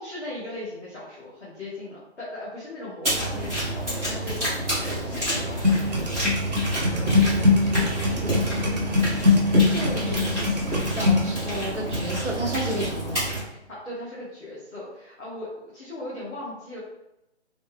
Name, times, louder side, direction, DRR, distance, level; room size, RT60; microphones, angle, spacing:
voice 1, 0.0-6.2 6.6-9.0 9.3-9.4 9.9-10.3 13.7-16.8, left 1 dB, 5° left, -21 dB, 0.5 m, -39 dB
sound 1, 3.0-13.4, right 1 dB, 15° right, 1.3 m, -28 dB
sound 2, 5.6-11.3, left 4 dB, 40° right, 0.8 m, -22 dB
voice 2, 9.7-10.5 10.9-13.2, right 1 dB, 90° right, 0 dB, 1.3 m, -31 dB
3.3 x 3.1 x 3.3 m, 0.87 s
figure-of-eight pair, 155°, 35 cm